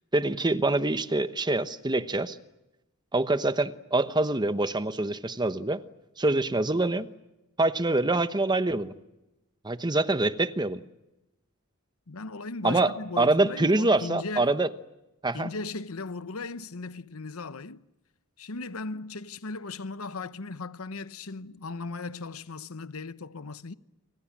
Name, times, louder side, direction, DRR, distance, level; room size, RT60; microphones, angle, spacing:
voice 1, 0.1-2.4 3.1-5.8 6.2-7.1 7.6-9.0 9.6-10.8 12.6-14.7 15.2-15.5, right 2 dB, 20° right, 1.0 m, -25 dB
voice 2, 12.1-14.5 15.3-17.8 18.4-23.7, left 3 dB, 75° left, 1.0 m, -37 dB
29.5 x 25.5 x 7.4 m
head